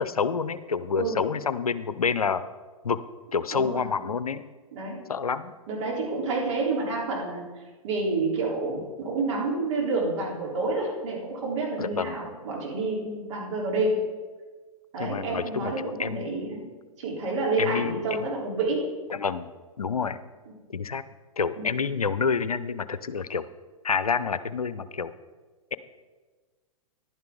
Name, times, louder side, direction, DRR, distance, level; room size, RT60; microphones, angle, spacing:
voice 1, 0.0-2.4 2.8-3.0 3.3-4.4 5.1-5.5 11.8-12.2 15.0-16.3 17.6-18.3 19.1-19.5 19.8-20.2 20.7-21.0 21.4-23.4 23.8-25.1, left 5 dB, 85° left, 14 dB, 0.6 m, -28 dB
voice 2, 3.5-3.9 4.7-5.0 5.7-7.4 7.8-14.0 14.9-16.7 17.0-18.8 21.6-21.7, right 3 dB, 55° right, -3 dB, 3.8 m, -29 dB
11.0 x 10.0 x 3.9 m, 1.4 s
figure-of-eight pair, 110°, 18 cm